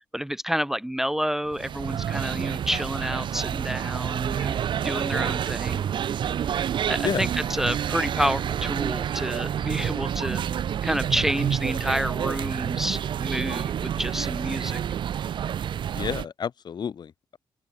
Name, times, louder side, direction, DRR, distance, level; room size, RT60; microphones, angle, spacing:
voice 1, 0.1-4.6 4.8-5.8 6.9-10.4 10.8-14.8, equal, 5° right, 1.1 m, -29 dB
sound 1, 1.5-16.3, right 9 dB, 70° right, 1.9 m, -28 dB
voice 2, 15.9-17.4, left 7 dB, 55° left, 6.1 m, -30 dB
open air
cardioid pair, 120°, 8 cm